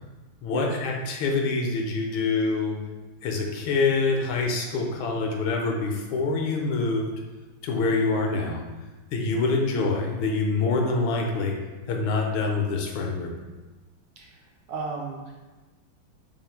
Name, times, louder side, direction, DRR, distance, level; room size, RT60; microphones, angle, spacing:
voice 1, 0.4-2.7 3.2-7.1 7.6-8.6 9.1-11.5 11.9-13.3, left 3 dB, 85° left, 1 dB, 1.4 m, -25 dB
voice 2, 14.7-15.3, right 4 dB, 70° right, -1 dB, 1.1 m, -34 dB
3.5 x 2.4 x 4.4 m, 1.2 s
omnidirectional pair, 2.2 m